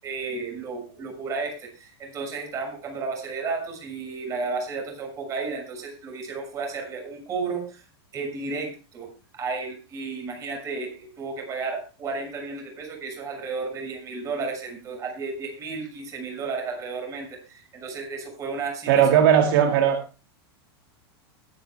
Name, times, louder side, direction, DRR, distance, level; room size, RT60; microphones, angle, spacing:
voice 1, 0.0-7.9 8.1-19.1, right 4 dB, 25° right, 3 dB, 6.3 m, -33 dB
voice 2, 18.9-20.2, right 9 dB, 60° right, 5 dB, 2.2 m, -18 dB
22.0 x 10.5 x 2.2 m, 0.32 s
supercardioid pair, 160°, 13 cm